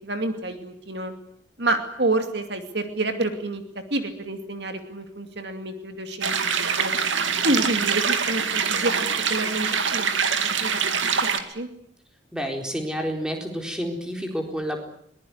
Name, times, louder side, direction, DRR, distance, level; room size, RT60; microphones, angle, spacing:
voice 1, 0.0-1.1 1.6-6.5 6.8-6.9 7.4-10.1 10.6-11.7, right 2 dB, 60° right, 7 dB, 2.6 m, -28 dB
sound 1, 6.2-11.4, right 6 dB, 80° right, 2.3 m, -24 dB
voice 2, 12.3-14.8, equal, 5° right, 3 dB, 4.1 m, -29 dB
22.0 x 21.0 x 9.6 m, 0.70 s
head